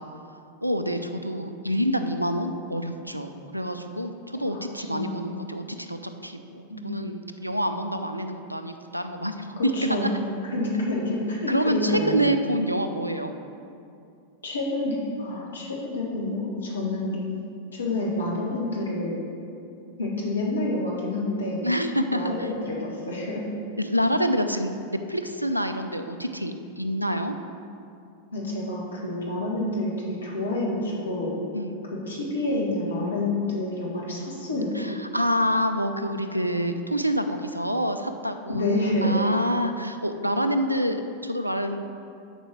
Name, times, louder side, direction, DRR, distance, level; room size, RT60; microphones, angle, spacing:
voice 1, 0.6-10.1 11.5-13.3 21.6-22.5 23.8-27.4 31.5-31.8 34.8-41.8, equal, 90° right, 8 dB, 0.4 m, -27 dB
voice 2, 4.9-5.2 6.7-6.8 9.6-10.1 10.5-12.2 14.4-17.2 17.7-19.2 20.0-21.6 22.1-23.4 28.3-31.3 32.1-34.7 38.5-39.2, left 2 dB, 70° left, -4 dB, 1.6 m, -28 dB
8.1 x 4.6 x 6.1 m, 2.5 s
figure-of-eight pair, 90°, 0 cm